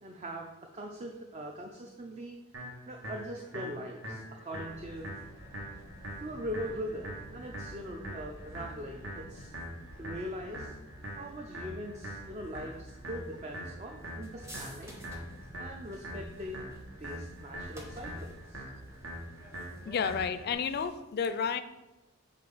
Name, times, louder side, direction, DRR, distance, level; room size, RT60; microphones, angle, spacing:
voice 1, 0.0-5.1 6.2-9.5 10.0-10.7 11.2-15.0 15.6-18.6, equal, 30° right, 2 dB, 0.5 m, -41 dB
sound 1, 2.5-20.5, equal, 70° right, 1.3 m, -44 dB
sound 2, 4.7-20.9, equal, 15° right, 0.9 m, -51 dB
voice 2, 19.9-21.6, left 6 dB, 50° left, 12 dB, 0.3 m, -31 dB
7.3 x 2.5 x 5.6 m, 1.1 s
head